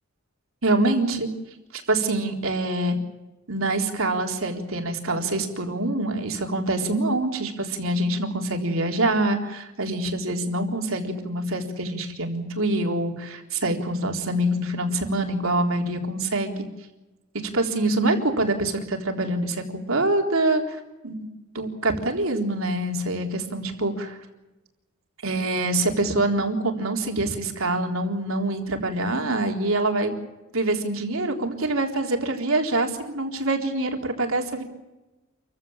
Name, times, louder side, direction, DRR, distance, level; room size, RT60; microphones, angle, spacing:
voice 1, 0.6-1.3 1.7-3.0 3.5-16.5 17.5-21.3 21.5-24.2 25.2-30.1 30.5-34.6, right 2 dB, 75° right, 3 dB, 3.9 m, -25 dB
28.0 x 15.5 x 8.8 m, 1.1 s
head